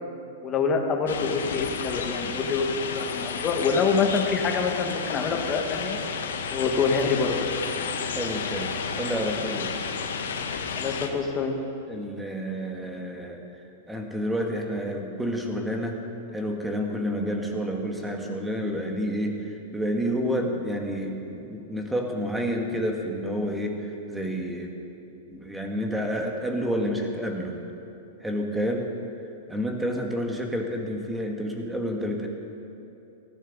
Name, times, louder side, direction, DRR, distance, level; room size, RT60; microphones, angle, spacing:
voice 1, 0.4-6.0 6.5-7.4 10.7-11.6, left 5 dB, 20° left, 2 dB, 1.6 m, -26 dB
sound 1, 1.1-11.1, left 6 dB, 90° left, 1.4 m, -32 dB
voice 2, 8.1-9.8 11.9-13.4 13.9-16.0 16.3-24.8 25.3-27.6 28.2-28.9 29.5-32.3, equal, 5° right, 2 dB, 1.5 m, -29 dB
19.0 x 14.5 x 4.0 m, 2.9 s
supercardioid pair, 155°, 0 cm